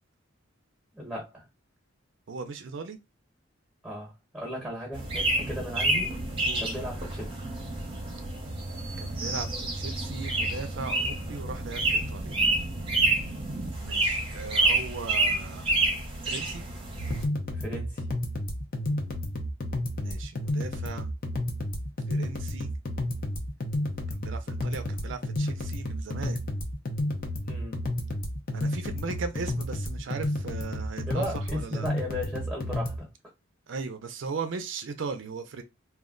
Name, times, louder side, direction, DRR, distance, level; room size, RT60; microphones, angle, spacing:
voice 1, 0.9-1.4 3.8-6.2 6.6-7.4 17.5-18.0 27.4-27.8 31.1-33.1, left 1 dB, ahead, 1.0 m, -36 dB
voice 2, 2.3-3.0 6.5-6.6 9.0-9.5 9.7-12.4 13.8-15.8 16.3-16.6 20.0-21.1 22.1-22.7 24.1-26.5 28.5-31.9 33.7-35.6, right 4 dB, 60° right, 0.4 m, -38 dB
sound 1, 4.9-17.3, right 2 dB, 25° right, 0.7 m, -28 dB
sound 2, 17.0-33.0, left 1 dB, 45° left, 0.6 m, -31 dB
2.3 x 2.1 x 3.7 m
head